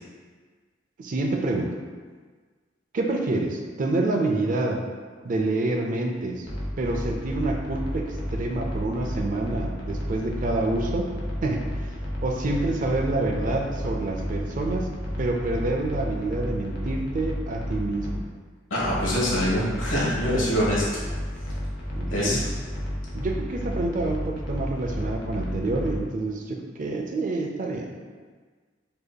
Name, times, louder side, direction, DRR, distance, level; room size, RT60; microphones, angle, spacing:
voice 1, 1.0-1.8 2.9-4.8 5.2-6.5 6.8-11.1 11.4-11.7 12.2-14.9 15.2-18.2 21.9-22.5 23.1-27.9, right 2 dB, 45° right, 2 dB, 0.4 m, -27 dB
sound 1, 6.4-18.2 18.8-26.0, equal, 55° left, 0.8 m, -32 dB
voice 2, 18.7-21.0 22.1-22.5, equal, 90° left, -6 dB, 1.3 m, -24 dB
5.0 x 2.8 x 2.2 m, 1.5 s
head